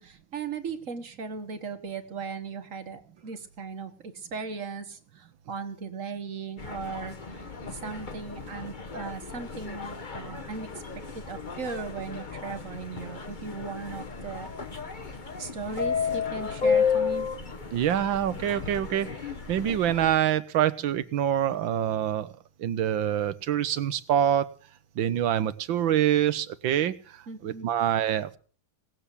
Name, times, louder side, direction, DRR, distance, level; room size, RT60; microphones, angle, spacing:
voice 1, 0.0-7.4 7.7-10.8 11.3-14.5 15.4-17.3 27.3-27.7, right 5 dB, 40° right, 8 dB, 1.8 m, -37 dB
sound 1, 6.6-20.1, left 6 dB, 30° left, 1.2 m, -33 dB
voice 2, 17.7-19.1 19.5-22.3 22.6-24.5 25.0-26.9 27.4-28.4, right 10 dB, 75° right, 15 dB, 1.6 m, -25 dB
18.5 x 7.6 x 8.3 m, 0.42 s
omnidirectional pair, 2.2 m